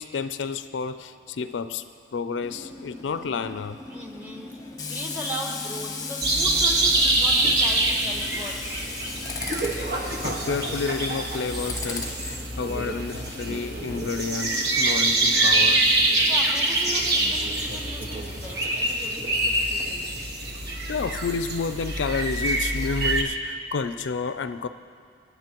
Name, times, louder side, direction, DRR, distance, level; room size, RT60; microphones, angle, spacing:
voice 1, 0.0-1.9 2.1-3.8 10.2-16.0 20.5-24.7, left 5 dB, 75° left, 11 dB, 0.4 m, -30 dB
Tools, 2.4-16.8, left 4 dB, 20° left, 0.9 m, -38 dB
voice 2, 3.9-8.6 16.2-20.0, equal, 10° right, 0 dB, 1.2 m, -37 dB
sound 1, 6.2-23.2, right 2 dB, 55° right, 1.5 m, -25 dB
26.0 x 9.8 x 3.0 m, 2.3 s
head